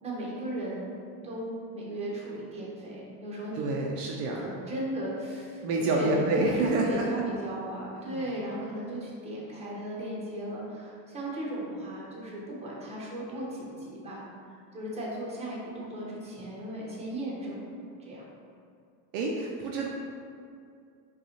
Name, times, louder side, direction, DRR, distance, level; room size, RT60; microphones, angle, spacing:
voice 1, 0.0-0.9 1.2-3.7 4.3-14.2 14.7-17.6 18.0-18.2, right 1 dB, 15° right, -5 dB, 0.8 m, -36 dB
voice 2, 3.5-4.5 5.6-7.0 8.1-8.2 19.1-19.9, right 2 dB, 55° right, -1 dB, 0.5 m, -28 dB
5.3 x 2.4 x 2.9 m, 2.4 s
supercardioid pair, 130°, 48 cm